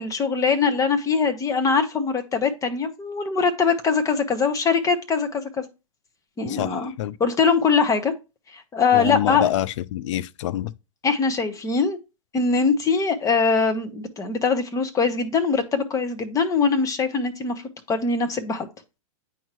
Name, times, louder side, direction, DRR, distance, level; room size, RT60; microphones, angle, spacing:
voice 1, 0.0-5.6 6.4-6.9 7.2-8.1 8.5-9.5 11.0-12.0 12.3-17.6 17.9-18.7, left 5 dB, 20° left, 1.0 m, -22 dB
voice 2, 6.4-7.1 8.9-10.7, left 12 dB, 60° left, 0.4 m, -26 dB
8.9 x 4.7 x 3.0 m
hypercardioid pair, 120°, 18 cm